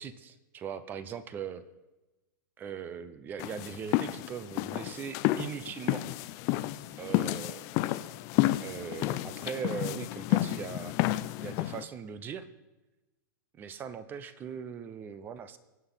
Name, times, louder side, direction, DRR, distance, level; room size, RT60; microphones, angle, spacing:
voice 1, 0.0-1.6 2.6-6.1 7.0-8.0 8.6-11.0 11.4-12.5 13.5-15.6, right 7 dB, 15° right, 14 dB, 0.8 m, -40 dB
sound 1, 3.4-11.8, left 16 dB, 30° left, 0.5 m, -31 dB
22.5 x 8.2 x 5.7 m, 1.1 s
hypercardioid pair, 155°, 11 cm